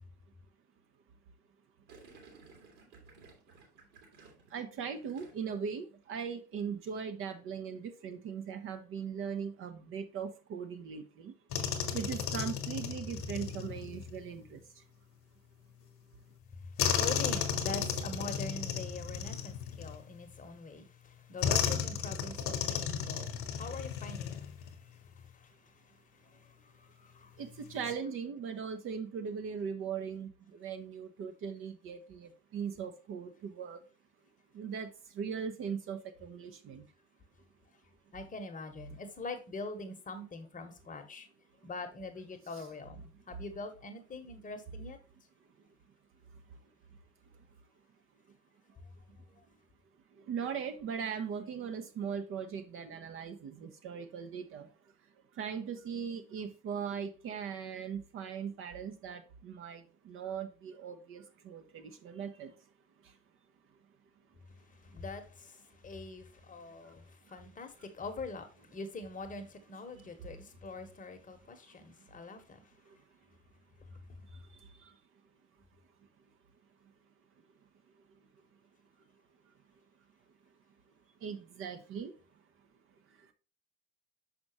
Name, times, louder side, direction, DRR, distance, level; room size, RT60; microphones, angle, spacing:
Gurgling, 1.9-5.7 5.9-6.3, right 4 dB, 60° right, 2.1 m, -57 dB
voice 1, 4.5-11.3 11.9-14.8 27.4-33.8 34.5-36.9 50.1-54.7 55.3-62.5 63.0-63.2 66.8-66.9 67.3-67.4 69.9-70.1 72.8-73.0 74.3-75.0 81.2-82.2 83.2-83.3, right 7 dB, 40° right, 0.7 m, -39 dB
sound 1, 11.5-14.2 16.8-20.3 21.4-24.8 25.1-25.3 27.6-27.9, left 8 dB, 40° left, 1.1 m, -34 dB
voice 2, 16.5-27.4 38.1-41.3 41.6-45.0 48.7-48.8 64.7-72.7, left 3 dB, 25° left, 1.1 m, -44 dB
6.0 x 5.1 x 3.0 m
figure-of-eight pair, 65°, 33 cm